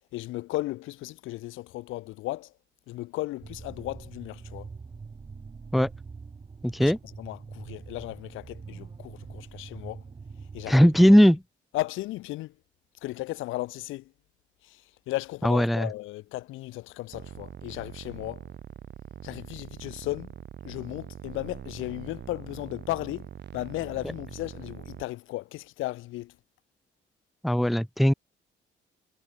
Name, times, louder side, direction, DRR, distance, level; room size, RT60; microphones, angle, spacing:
voice 1, 0.1-2.5 2.9-4.7 6.8-6.9 7.2-10.0 10.5-11.2 11.7-12.5 13.0-14.1 14.6-18.5 19.2-20.3 20.6-26.4, left 18 dB, 90° left, 0.6 m, -35 dB
sound 1, 3.4-11.2, right 5 dB, 25° right, 0.8 m, -44 dB
voice 2, 6.6-7.0 10.7-11.4 15.4-15.9 27.4-28.1, equal, ahead, 0.3 m, -19 dB
sound 2, 17.1-25.0, right 9 dB, 60° right, 4.7 m, -43 dB
cardioid pair, 90°, 20 cm